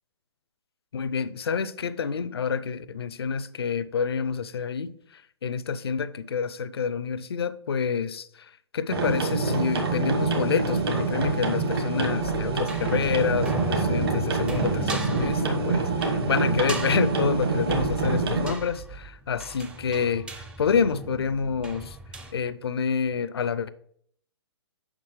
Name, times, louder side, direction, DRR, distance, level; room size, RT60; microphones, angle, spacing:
voice 1, 0.9-22.0 22.3-23.7, left 6 dB, 60° left, 0.5 m, -28 dB
sound 1, 8.9-18.5, right 3 dB, 60° right, 1.5 m, -26 dB
sound 2, 12.2-22.3, right 3 dB, 5° right, 0.5 m, -37 dB
7.4 x 5.9 x 3.1 m
figure-of-eight pair, 125°, 15 cm